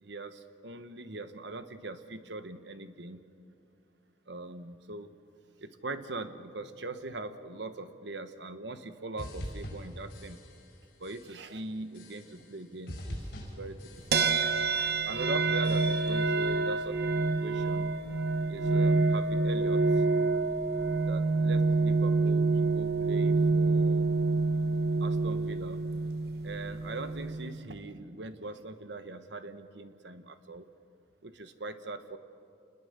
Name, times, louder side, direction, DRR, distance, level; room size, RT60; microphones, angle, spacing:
voice 1, 0.0-3.2 4.3-5.2 5.6-10.4 11.0-14.3 15.0-16.9 17.4-17.9 18.5-20.0 21.1-24.2 25.0-25.8 26.4-30.7 31.2-32.2, right 2 dB, 80° right, 10 dB, 1.2 m, -41 dB
sound 1, 9.2-10.8 11.0-11.5 11.9-12.6 12.9-14.5 14.7-15.2 15.6-16.3, equal, 60° left, 6.1 m, -44 dB
sound 2, 14.1-27.6, right 3 dB, 60° right, 0.8 m, -27 dB
28.0 x 20.5 x 6.8 m, 2.6 s
head